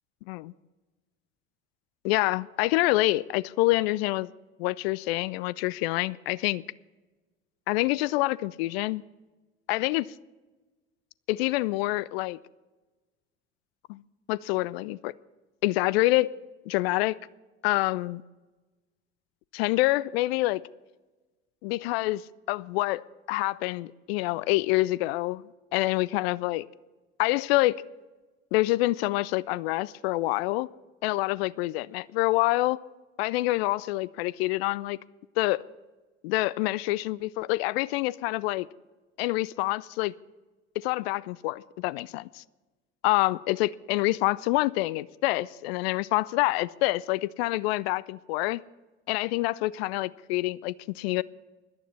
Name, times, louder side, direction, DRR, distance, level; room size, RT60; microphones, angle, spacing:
voice 1, 2.0-4.3 4.6-6.6 7.7-9.0 9.7-10.1 11.3-12.4 13.9-14.0 14.3-15.1 15.6-16.3 16.7-17.2 17.6-18.2 19.5-20.6 21.6-22.2 22.5-23.0 23.3-25.4 25.7-26.6 27.2-27.8 28.5-30.7 31.0-32.8 33.2-35.0 35.4-35.6 36.2-38.7 39.2-40.1 40.8-42.4 43.0-48.6 49.1-51.2, left 19 dB, 60° left, 22 dB, 0.5 m, -26 dB
17.5 x 12.0 x 4.2 m, 1.2 s
figure-of-eight pair, 60°, 36 cm